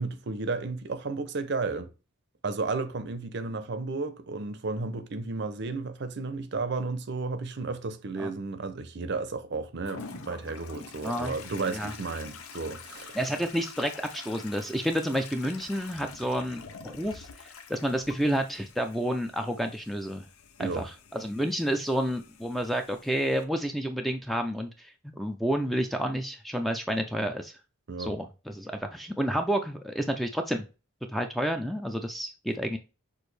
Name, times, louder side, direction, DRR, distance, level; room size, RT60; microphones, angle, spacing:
voice 1, 0.0-1.9 2.4-13.2 20.6-20.8 27.9-28.1, right 3 dB, 55° right, 0.5 m, -33 dB
Toilet flush, 9.8-23.4, left 5 dB, 80° left, 0.6 m, -47 dB
voice 2, 11.0-11.3 11.7-11.9 13.1-20.3 20.6-27.5 28.0-30.6 31.1-32.8, equal, ahead, 0.3 m, -30 dB
6.2 x 2.5 x 3.2 m
head